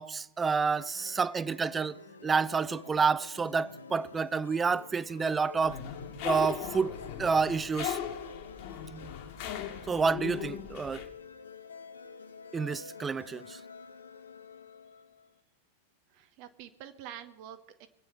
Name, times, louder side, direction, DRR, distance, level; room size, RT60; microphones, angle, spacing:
voice 1, 0.0-5.8 6.2-6.9 7.2-8.0 9.9-11.0 12.5-13.6, right 5 dB, 15° right, 0.5 m, -29 dB
sound 1, 0.7-15.3, left 5 dB, 75° left, 1.0 m, -49 dB
sound 2, 5.6-11.0, left 9 dB, 45° left, 2.2 m, -38 dB
voice 2, 16.1-17.9, right 10 dB, 45° right, 1.0 m, -47 dB
23.0 x 9.0 x 5.8 m
figure-of-eight pair, 90°, 0 cm